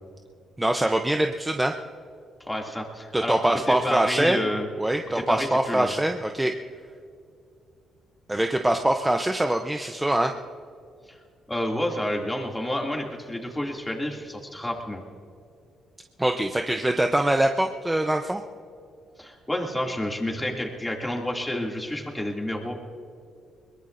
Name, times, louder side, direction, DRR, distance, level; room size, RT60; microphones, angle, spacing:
voice 1, 0.6-1.7 3.1-4.4 4.8-6.5 8.3-10.3 16.2-18.4, right 1 dB, 10° right, 5 dB, 0.7 m, -23 dB
voice 2, 2.5-3.4 3.7-4.7 5.1-5.9 11.1-11.2 11.5-15.0 19.2-22.7, left 1 dB, 10° left, 0 dB, 2.5 m, -29 dB
22.0 x 21.5 x 2.6 m, 2.3 s
cardioid pair, 90°, 0 cm